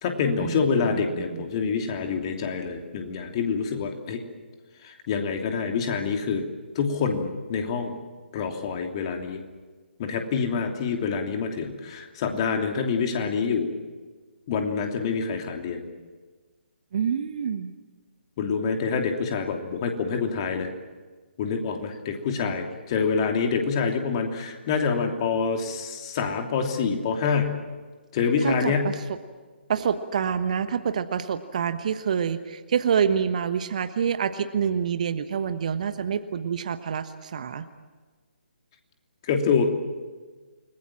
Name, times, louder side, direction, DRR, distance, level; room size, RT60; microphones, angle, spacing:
voice 1, 0.0-4.2 4.8-6.5 6.7-7.9 8.3-9.4 10.0-13.7 14.5-15.9 18.4-20.7 21.4-27.5 28.1-28.9 39.2-39.7, left 5 dB, 30° left, 4 dB, 3.0 m, -26 dB
voice 2, 0.9-1.4 16.9-17.7 28.4-28.9 29.7-37.6, right 7 dB, 40° right, 10 dB, 1.2 m, -27 dB
29.5 x 20.5 x 7.5 m, 1.4 s
figure-of-eight pair, 140°, 6 cm